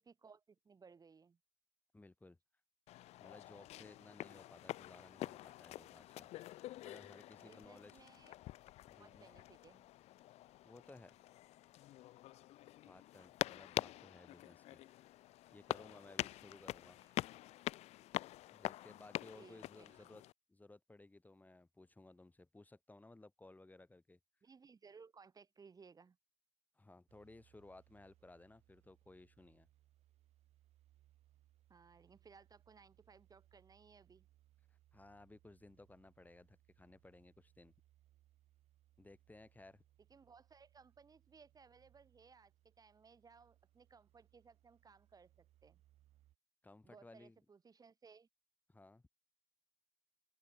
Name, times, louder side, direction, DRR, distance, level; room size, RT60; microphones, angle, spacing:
voice 1, 0.0-1.4 7.4-8.3 9.0-9.9 17.0-17.2 19.4-20.1 24.4-26.2 31.7-34.3 40.1-45.8 46.8-48.3, right 5 dB, 30° right, 4.3 m, -62 dB
voice 2, 1.9-2.4 3.2-6.3 6.8-8.0 8.9-9.3 10.6-11.2 12.9-14.8 15.5-17.0 18.5-24.2 26.8-29.7 34.7-37.7 39.0-39.8 46.6-47.4 48.7-49.0, left 2 dB, 15° left, 4.0 m, -59 dB
sound 1, 2.9-20.3, left 15 dB, 60° left, 2.4 m, -46 dB
sound 2, 27.1-46.4, right 14 dB, 60° right, 6.7 m, -72 dB
open air
hypercardioid pair, 60°, 12 cm